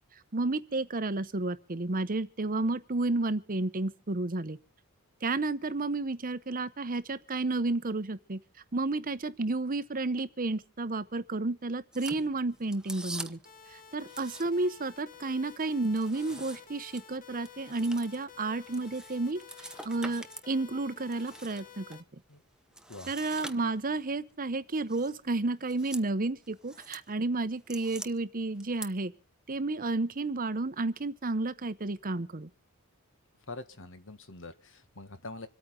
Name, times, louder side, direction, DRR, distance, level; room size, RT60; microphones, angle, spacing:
voice 1, 0.3-4.6 5.2-8.4 8.7-13.4 13.7-22.0 23.1-29.1 29.5-32.5, right 2 dB, 40° right, 0.9 m, -31 dB
sound 1, 11.9-13.6 14.0-14.8 15.1-20.5 20.9-22.0 22.7-24.0 24.9-25.2 25.6-26.1 26.4-27.0 27.4-28.1 28.6-28.9, right 1 dB, 5° right, 1.0 m, -45 dB
sound 2, 13.4-22.0, left 7 dB, 40° left, 2.1 m, -52 dB
voice 2, 33.5-35.5, left 2 dB, 60° left, 1.8 m, -44 dB
26.5 x 9.0 x 3.8 m
head